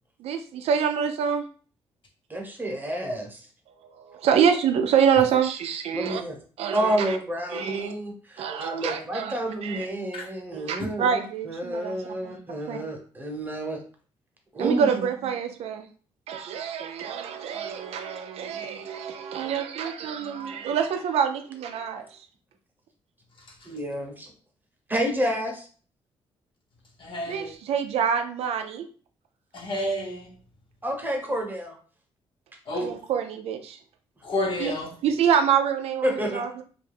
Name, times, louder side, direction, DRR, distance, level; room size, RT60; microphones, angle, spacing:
voice 1, 0.2-1.4 3.7-6.2 6.6-7.2 7.5-7.9 8.4-9.3 9.6-9.9 10.5-12.3 12.7-12.8 14.6-15.9 16.3-22.3 27.3-28.8 32.7-33.8 34.6-34.7 35.0-36.6, right 7 dB, 75° right, 0.4 m, -26 dB
voice 2, 2.3-3.5 5.9-6.4 6.7-13.8 14.5-15.0 23.6-24.3 24.9-25.7 30.8-31.8 36.0-36.4, right 1 dB, 20° right, 0.9 m, -29 dB
voice 3, 27.0-27.5 29.5-30.3 32.7-33.0 34.2-34.9, left 1 dB, 50° left, 1.0 m, -30 dB
2.5 x 2.2 x 3.4 m
cardioid pair, 70°, 11 cm